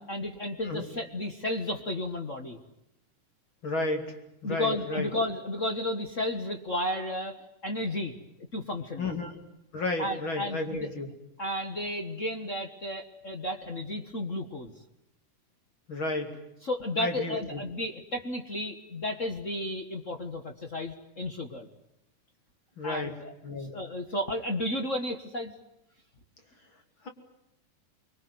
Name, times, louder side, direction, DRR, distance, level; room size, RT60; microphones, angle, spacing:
voice 1, 0.0-2.6 4.4-7.4 7.6-8.1 8.5-9.1 10.0-10.9 11.4-14.7 16.6-21.7 22.8-25.5, left 1 dB, 55° left, 6 dB, 0.8 m, -33 dB
voice 2, 3.6-4.1 4.4-5.1 9.0-9.4 9.7-11.1 15.9-16.4 17.0-17.6 22.8-23.1 23.4-23.7, left 2 dB, 35° left, 5 dB, 3.2 m, -32 dB
25.0 x 23.0 x 9.4 m, 0.84 s
omnidirectional pair, 4.0 m